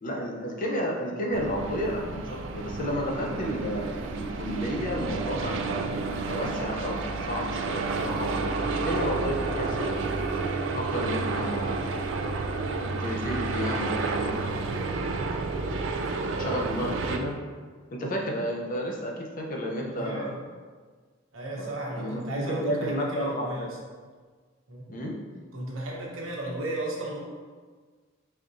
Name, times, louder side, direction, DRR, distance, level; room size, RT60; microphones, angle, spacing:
voice 1, 0.0-10.1 10.8-12.1 12.8-15.1 16.3-17.4 17.9-20.3 21.5-23.5 24.9-25.2, equal, 40° left, -1 dB, 0.6 m, -32 dB
sound 1, 1.3-17.2, right 3 dB, 65° right, 0.4 m, -30 dB
voice 2, 15.7-16.4 19.9-20.4 21.3-23.7 24.7-25.0 25.5-27.2, right 1 dB, 85° right, -3 dB, 1.0 m, -35 dB
4.4 x 3.6 x 2.6 m, 1.5 s
head